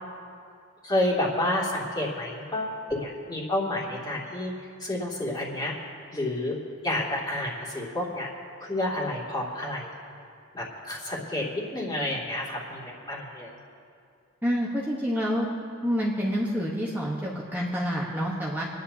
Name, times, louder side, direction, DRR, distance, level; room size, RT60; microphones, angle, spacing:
voice 1, 0.8-4.5 4.8-5.7 6.1-6.6 6.8-8.3 8.6-9.9 10.5-13.5, left 1 dB, 20° left, -4 dB, 2.5 m, -29 dB
voice 2, 14.4-15.5 15.8-18.6, equal, 10° right, -5 dB, 1.2 m, -28 dB
27.5 x 10.5 x 2.8 m, 2.4 s
head